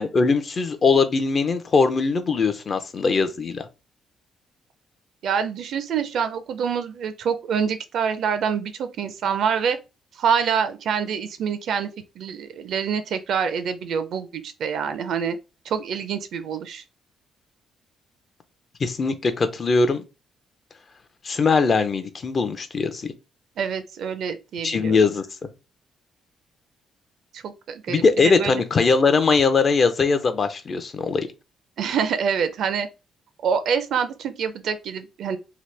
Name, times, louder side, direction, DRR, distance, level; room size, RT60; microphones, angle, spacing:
voice 1, 0.0-3.7 18.8-20.0 21.2-23.1 24.6-25.3 27.9-31.3, left 4 dB, 45° left, 0.5 m, -21 dB
voice 2, 5.2-9.8 10.2-15.4 15.7-16.8 23.6-25.0 27.3-28.5 31.8-32.9 33.4-35.4, right 7 dB, 70° right, 0.4 m, -26 dB
2.8 x 2.1 x 3.2 m
cardioid pair, 90°, 0 cm